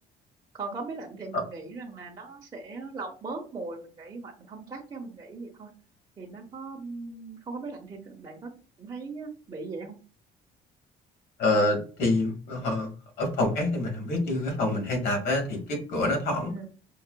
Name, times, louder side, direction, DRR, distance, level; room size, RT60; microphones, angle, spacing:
voice 1, 0.5-5.7 6.2-8.5 8.8-10.0 16.5-16.7, right 3 dB, 25° right, -3 dB, 0.9 m, -39 dB
voice 2, 11.4-12.9 13.2-16.5, left 2 dB, 75° left, 2 dB, 1.5 m, -26 dB
5.6 x 2.3 x 2.2 m, 0.36 s
cardioid pair, 110°, 17 cm